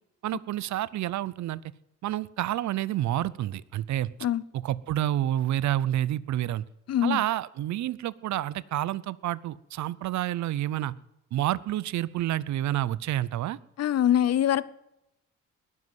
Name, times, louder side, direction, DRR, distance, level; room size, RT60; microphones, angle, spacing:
voice 1, 0.2-1.6 2.0-4.1 4.5-6.6 7.0-10.9 11.3-13.6, right 13 dB, 70° right, 0.6 m, -29 dB
voice 2, 6.9-7.2 13.8-14.6, left 11 dB, 55° left, 0.7 m, -23 dB
20.5 x 7.6 x 7.9 m
cardioid pair, 90°, 30 cm